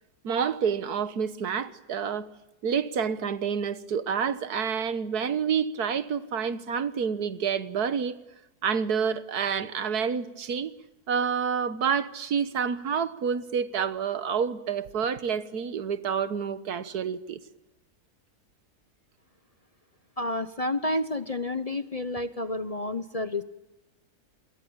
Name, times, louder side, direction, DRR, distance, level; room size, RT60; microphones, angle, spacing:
voice 1, 0.2-2.3 2.6-8.2 8.6-10.7 11.1-17.4 22.5-22.6, right 7 dB, 80° right, 1.7 m, -28 dB
voice 2, 20.2-23.4, left 2 dB, 30° left, 0.9 m, -30 dB
27.5 x 23.0 x 8.8 m
omnidirectional pair, 1.6 m